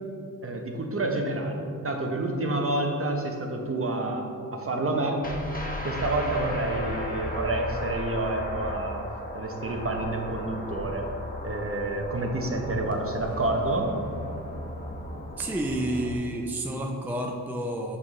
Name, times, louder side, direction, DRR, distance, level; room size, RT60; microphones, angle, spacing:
voice 1, 0.4-4.3 4.5-5.2 5.8-9.0 9.3-11.1 11.4-13.9, right 2 dB, 35° right, 2 dB, 0.9 m, -28 dB
sound 1, 5.2-16.2, left 1 dB, 25° left, 1.1 m, -36 dB
voice 2, 15.4-18.0, right 1 dB, 5° right, 1 dB, 0.5 m, -30 dB
6.6 x 5.2 x 3.1 m, 2.5 s
cardioid pair, 55°, 37 cm